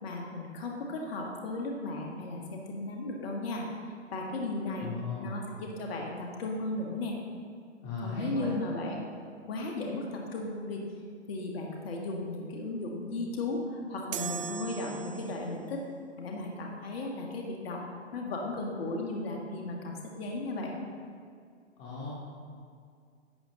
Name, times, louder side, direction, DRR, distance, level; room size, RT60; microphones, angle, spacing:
voice 1, 0.0-4.9 5.2-7.2 8.0-9.0 9.5-10.9 11.3-15.8 16.2-17.8 18.1-20.8, left 2 dB, 55° left, 0 dB, 1.5 m, -35 dB
voice 2, 4.8-5.4 7.8-8.5 21.8-22.1, left 4 dB, 35° left, -8 dB, 2.2 m, -37 dB
sound 1, 14.1-15.6, right 6 dB, 35° right, 0.8 m, -38 dB
12.0 x 7.9 x 3.8 m, 2.2 s
hypercardioid pair, 120°, 36 cm